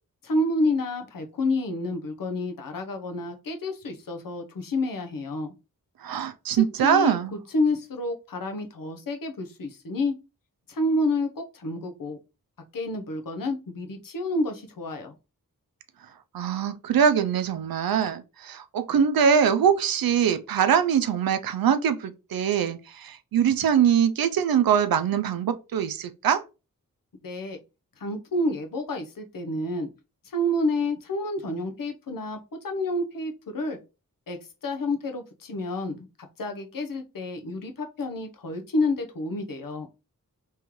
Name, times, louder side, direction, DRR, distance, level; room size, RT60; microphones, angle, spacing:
voice 1, 0.2-5.5 6.5-10.1 10.7-12.2 12.7-15.2 27.2-27.6 28.0-29.9 30.2-33.8 34.3-36.1 36.4-39.9, left 1 dB, 70° left, 0.8 m, -29 dB
voice 2, 6.0-7.3 16.3-26.4, right 8 dB, 85° right, 0.5 m, -23 dB
3.7 x 3.1 x 3.0 m
wide cardioid pair, 75°, 34 cm